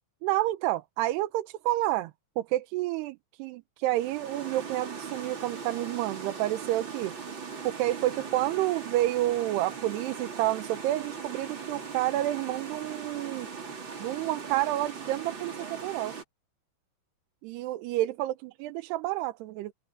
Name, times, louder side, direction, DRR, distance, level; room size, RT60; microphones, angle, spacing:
voice 1, 0.2-2.1 2.4-7.1 7.6-13.5 14.0-16.2 17.4-19.7, right 15 dB, 85° right, 2.9 m, -29 dB
sound 1, 3.9-16.2, right 5 dB, 30° right, 3.4 m, -40 dB
omnidirectional pair, 4.7 m